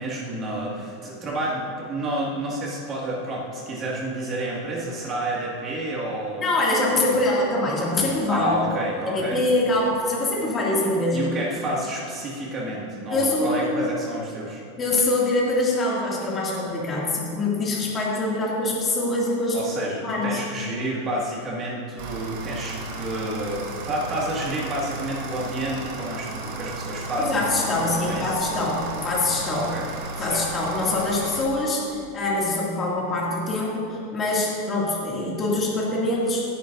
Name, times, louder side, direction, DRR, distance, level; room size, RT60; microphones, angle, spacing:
voice 1, 0.0-6.4 7.1-7.2 8.3-9.5 11.1-14.6 19.5-28.3 29.5-29.9 30.2-30.5, right 1 dB, 25° right, -4 dB, 2.0 m, -30 dB
voice 2, 6.4-8.6 9.1-11.3 13.1-13.9 14.8-19.6 20.0-20.4 27.2-29.7 30.2-36.4, left 2 dB, 20° left, -5 dB, 2.3 m, -24 dB
sound 1, 22.0-31.5, right 2 dB, 60° right, 1.9 m, -34 dB
16.5 x 10.0 x 2.6 m, 2.8 s
supercardioid pair, 160°, 0 cm